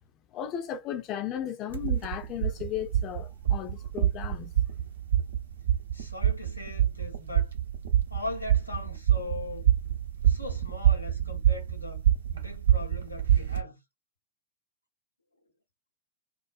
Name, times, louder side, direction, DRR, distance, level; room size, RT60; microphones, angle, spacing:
voice 1, 0.3-4.5, left 10 dB, 35° left, 0.5 m, -35 dB
sound 1, 1.7-13.6, right 11 dB, 70° right, 0.7 m, -26 dB
voice 2, 5.9-7.5 8.1-9.7 10.2-12.1 12.3-13.8, left 2 dB, 90° left, 0.9 m, -40 dB
2.4 x 2.2 x 2.5 m
figure-of-eight pair, 90°, 0 cm